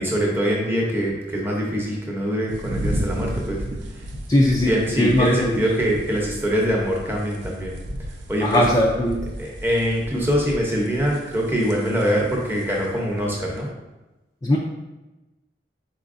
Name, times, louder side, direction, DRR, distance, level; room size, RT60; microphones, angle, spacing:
voice 1, 0.0-3.6 4.6-7.7 8.3-8.6 9.4-13.7, equal, 10° right, -2 dB, 0.7 m, -23 dB
sound 1, 2.5-13.7, equal, 80° right, 0.6 m, -34 dB
voice 2, 4.3-5.6 8.4-9.3 14.4-14.6, left 1 dB, 20° left, -2 dB, 0.3 m, -19 dB
4.5 x 4.0 x 2.5 m, 1.1 s
head